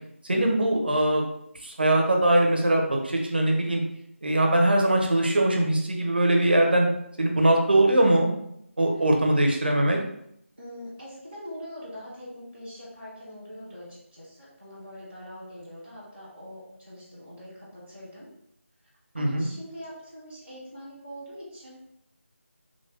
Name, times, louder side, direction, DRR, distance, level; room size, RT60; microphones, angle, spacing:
voice 1, 0.3-1.2 1.6-3.8 4.2-6.9 7.2-8.3 8.8-10.0 19.1-19.5, right 1 dB, 45° right, 1 dB, 0.6 m, -21 dB
voice 2, 10.6-18.3 19.1-21.8, equal, 10° left, -11 dB, 0.4 m, -43 dB
3.1 x 2.0 x 3.9 m, 0.74 s
figure-of-eight pair, 180°, 7 cm